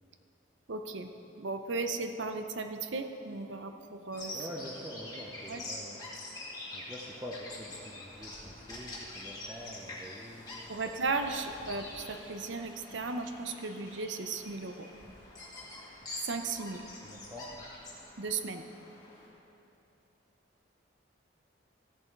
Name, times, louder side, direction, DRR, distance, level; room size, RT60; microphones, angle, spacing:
voice 1, 0.7-1.1 1.4-4.5 5.5-5.6 10.7-14.9 16.2-16.8 18.2-18.7, right 3 dB, 70° right, 7 dB, 0.6 m, -36 dB
Bird vocalization bird call bird song, 4.1-19.3, left 2 dB, 20° left, 1.8 m, -46 dB
voice 2, 4.3-6.0 6.7-10.5 10.8-11.0 17.0-17.5, equal, 15° right, -3 dB, 0.7 m, -45 dB
14.5 x 6.8 x 4.6 m, 3.0 s
head